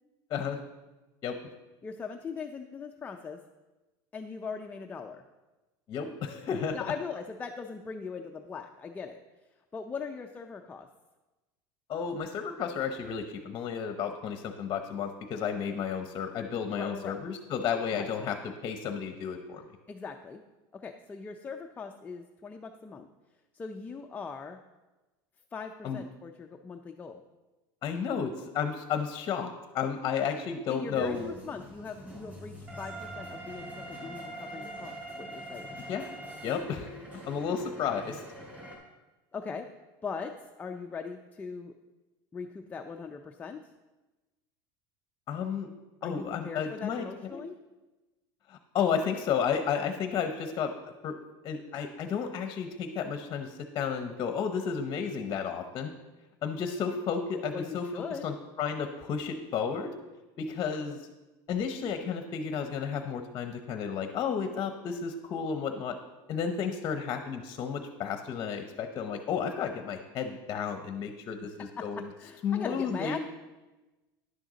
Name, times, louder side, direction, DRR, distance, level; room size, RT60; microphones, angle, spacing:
voice 1, 0.3-0.6 1.2-1.4 5.9-6.8 11.9-19.6 25.8-26.0 27.8-31.3 35.9-36.1 36.4-38.2 45.3-45.7 46.0-47.4 48.5-51.2 51.4-55.9 56.4-59.9 60.4-61.0 61.5-66.0 66.3-72.1 72.4-73.2, left 6 dB, 30° left, 7 dB, 0.8 m, -32 dB
voice 2, 1.8-3.4 4.1-5.2 6.7-9.2 9.7-10.9 16.8-17.2 17.9-18.1 19.9-20.4 20.7-23.1 23.5-24.6 25.5-27.2 30.7-35.7 39.3-39.7 40.0-41.7 42.3-43.7 46.0-47.6 57.5-58.3 71.8-73.2, left 5 dB, 15° left, 3 dB, 0.4 m, -40 dB
sound 1, 30.9-38.7, right 1 dB, 15° right, 3.1 m, -43 dB
11.0 x 9.2 x 4.0 m, 1.1 s
supercardioid pair, 145°, 12 cm